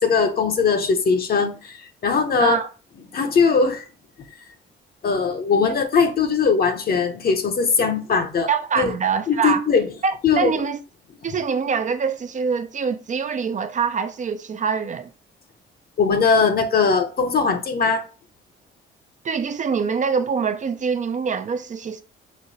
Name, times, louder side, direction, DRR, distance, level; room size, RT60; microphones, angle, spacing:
voice 1, 0.0-2.6 3.1-3.8 5.0-8.5 8.8-8.9 9.3-9.8 10.2-10.5 16.0-18.0, left 5 dB, 50° left, 0.9 m, -20 dB
voice 2, 2.4-2.7 8.5-9.6 10.0-10.8 11.2-15.1 19.2-22.0, right 6 dB, 40° right, 0.5 m, -24 dB
5.2 x 2.2 x 4.1 m
cardioid pair, 90°, 20 cm